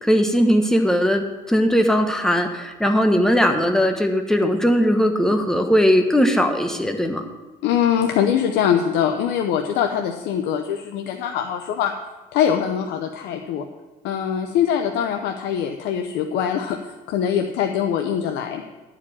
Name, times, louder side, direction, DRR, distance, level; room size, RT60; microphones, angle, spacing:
voice 1, 0.0-7.3, equal, 5° left, 5 dB, 1.2 m, -19 dB
voice 2, 7.6-11.9 12.3-13.7 14.0-16.8 17.1-18.6, left 8 dB, 85° left, 4 dB, 0.7 m, -22 dB
11.0 x 5.0 x 8.5 m, 1.2 s
cardioid pair, 110°, 17 cm